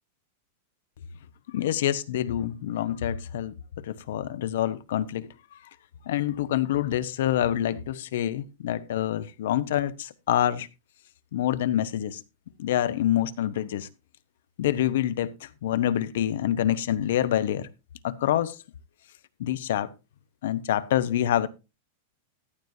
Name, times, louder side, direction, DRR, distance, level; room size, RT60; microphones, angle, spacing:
voice 1, 1.5-3.5 3.8-5.6 6.1-10.7 11.3-12.2 12.6-13.9 14.6-17.7 18.0-18.6 19.4-19.9 20.4-21.5, left 11 dB, 65° left, 0.8 m, -26 dB
14.5 x 9.3 x 2.7 m
supercardioid pair, 175°, 0 cm